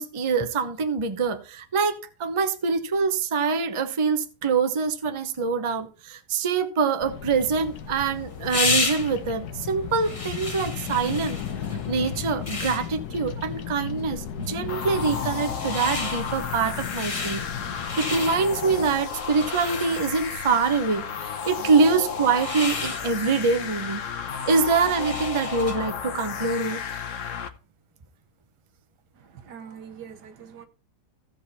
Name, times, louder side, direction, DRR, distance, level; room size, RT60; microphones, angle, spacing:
voice 1, 0.0-11.4 11.9-17.4 18.0-24.0 24.5-26.8, right 4 dB, 25° right, 0.7 m, -25 dB
Bird vocalization bird call bird song, 7.0-19.0, left 8 dB, 75° left, 1.4 m, -35 dB
sound 1, 7.5-26.0, left 3 dB, 25° left, 1.1 m, -34 dB
sound 2, 14.7-27.5, left 6 dB, 55° left, 1.2 m, -33 dB
voice 2, 29.4-30.7, right 7 dB, 80° right, 1.8 m, -43 dB
15.5 x 5.3 x 4.1 m
omnidirectional pair, 1.7 m